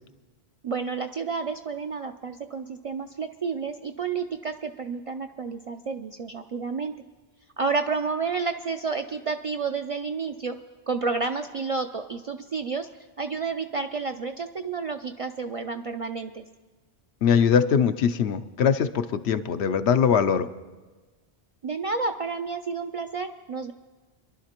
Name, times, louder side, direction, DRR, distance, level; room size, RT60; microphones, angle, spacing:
voice 1, 0.6-6.9 7.6-10.6 10.9-12.9 13.2-16.5 21.6-23.7, right 4 dB, 55° right, 6 dB, 0.3 m, -30 dB
voice 2, 17.2-20.5, left 7 dB, 85° left, 9 dB, 0.9 m, -22 dB
25.0 x 11.5 x 2.9 m, 1.3 s
omnidirectional pair, 1.1 m